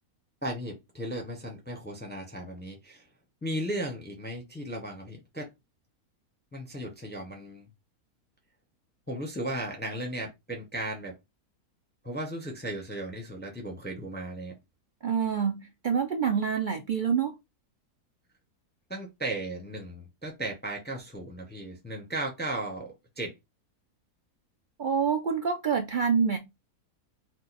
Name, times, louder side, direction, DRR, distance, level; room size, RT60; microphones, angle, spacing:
voice 1, 0.4-3.1 3.4-5.5 6.5-7.7 9.1-11.1 12.0-14.5 18.9-23.4, right 1 dB, 10° left, 0.7 m, -36 dB
voice 2, 15.0-17.3 24.8-26.4, right 6 dB, 80° right, 0.4 m, -26 dB
4.4 x 2.2 x 4.1 m
omnidirectional pair, 1.6 m